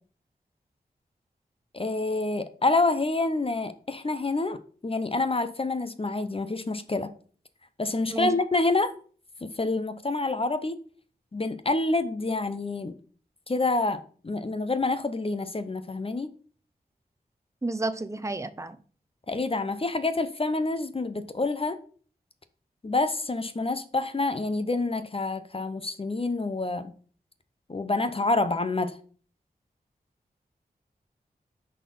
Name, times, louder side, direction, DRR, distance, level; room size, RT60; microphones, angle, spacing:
voice 1, 1.7-7.1 7.8-8.9 9.4-10.8 11.3-12.9 13.5-16.3 19.3-21.8 22.8-26.9 27.7-28.9, left 3 dB, 35° left, 0.7 m, -27 dB
voice 2, 17.6-18.8, right 2 dB, 20° right, 0.6 m, -31 dB
5.6 x 4.3 x 5.5 m
cardioid pair, 50°, 16 cm